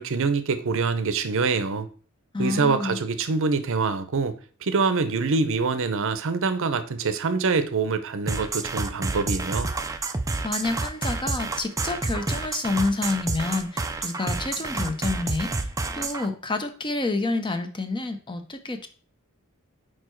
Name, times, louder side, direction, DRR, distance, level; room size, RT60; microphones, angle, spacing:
voice 1, 0.0-1.9 2.4-4.3 4.6-9.7, right 4 dB, 65° right, 11 dB, 0.7 m, -25 dB
voice 2, 2.3-3.0 10.4-15.7 15.9-18.9, left 3 dB, 20° left, 8 dB, 0.7 m, -28 dB
sound 1, 8.3-16.3, right 3 dB, 15° right, 0.4 m, -29 dB
4.8 x 4.5 x 4.5 m, 0.41 s
head